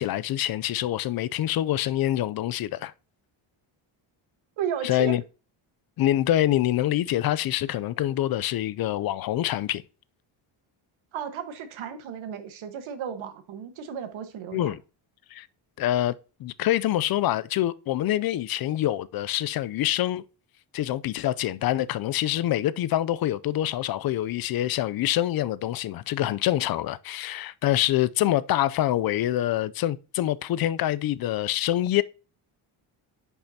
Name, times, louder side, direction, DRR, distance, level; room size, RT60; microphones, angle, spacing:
voice 1, 0.0-2.9 4.8-5.2 6.0-9.8 14.5-14.8 15.3-15.5 15.8-20.2 20.7-32.0, left 13 dB, 50° left, 0.5 m, -25 dB
voice 2, 4.6-5.2 11.1-14.7, right 7 dB, 80° right, 1.4 m, -34 dB
10.5 x 5.5 x 2.8 m
cardioid pair, 145°, 47 cm